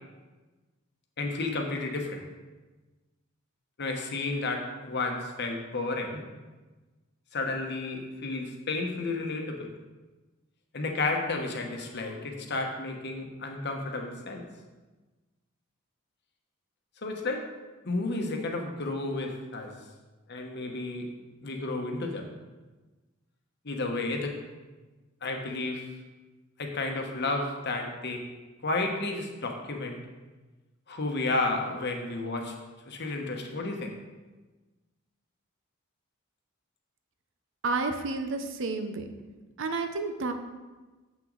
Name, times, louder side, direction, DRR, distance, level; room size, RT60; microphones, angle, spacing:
voice 1, 1.2-2.2 3.8-6.2 7.3-9.7 10.7-14.4 17.0-17.4 17.8-19.7 20.3-21.1 21.4-22.3 23.6-24.3 25.2-25.9 26.6-28.2 28.6-30.0 30.9-32.5 32.9-33.9, left 2 dB, 55° left, 3 dB, 1.0 m, -32 dB
voice 2, 37.6-39.1 39.6-40.3, right 3 dB, 65° right, 7 dB, 0.7 m, -30 dB
7.6 x 6.1 x 3.9 m, 1.2 s
head